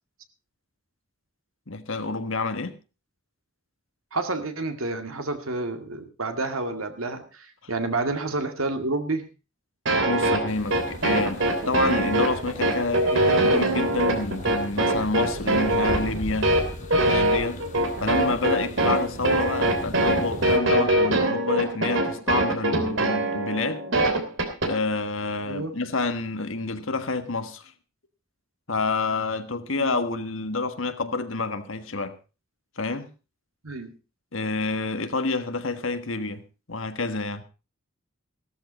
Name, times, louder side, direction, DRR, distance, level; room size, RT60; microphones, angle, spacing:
voice 1, 1.7-2.8 7.6-7.7 10.1-16.6 16.9-17.6 18.0-23.8 24.6-27.7 28.7-32.2 32.8-33.1 34.3-36.4 36.7-37.4, left 3 dB, 70° left, 1.5 m, -28 dB
voice 2, 4.1-9.3 25.4-25.8 29.7-30.0 33.6-33.9, right 3 dB, 90° right, 2.2 m, -29 dB
sound 1, 9.9-24.7, right 1 dB, 65° right, 3.0 m, -23 dB
sound 2, 10.5-20.6, left 1 dB, 35° left, 2.1 m, -38 dB
15.0 x 13.5 x 4.2 m
head